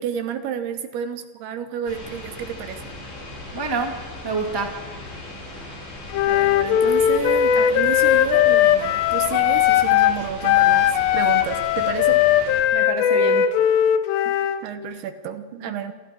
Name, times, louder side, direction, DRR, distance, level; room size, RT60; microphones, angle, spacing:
voice 1, 0.0-2.9 6.3-12.2 14.6-15.9, right 8 dB, 75° right, 9 dB, 2.8 m, -30 dB
sound 1, 1.9-12.6, left 2 dB, 55° left, 9.5 m, -38 dB
voice 2, 3.5-4.8 12.7-13.5 15.6-15.8, right 3 dB, 15° right, 2 dB, 0.8 m, -28 dB
Wind instrument woodwind instrument, 6.1-10.2 10.4-14.6, left 10 dB, 80° left, 2.9 m, -18 dB
28.0 x 22.5 x 4.6 m, 1.4 s
omnidirectional pair, 5.2 m